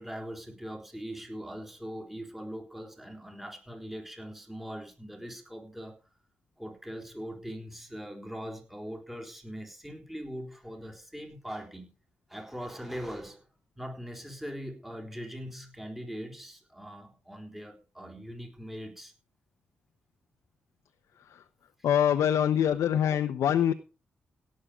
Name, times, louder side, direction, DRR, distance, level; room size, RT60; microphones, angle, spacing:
voice 1, 0.0-6.0 6.6-11.9 12.3-13.5 13.8-19.1, equal, 5° right, 4.0 m, -41 dB
voice 2, 21.8-23.7, left 9 dB, 90° left, 0.9 m, -24 dB
17.0 x 7.6 x 5.0 m
cardioid pair, 75°, 5 cm